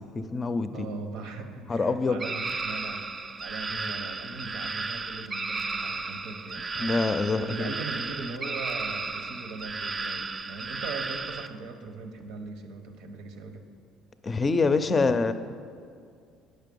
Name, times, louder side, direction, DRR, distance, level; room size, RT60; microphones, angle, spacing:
voice 1, 0.0-0.9 1.7-2.2 3.7-3.8 6.8-7.7 14.2-15.3, left 3 dB, 30° left, 11 dB, 0.5 m, -25 dB
voice 2, 0.7-7.0 7.4-13.7, right 4 dB, 75° right, 6 dB, 0.9 m, -39 dB
sound 1, 2.2-11.5, right 4 dB, 30° right, 0.4 m, -34 dB
9.0 x 6.5 x 5.3 m, 2.3 s
supercardioid pair, 85°, 0 cm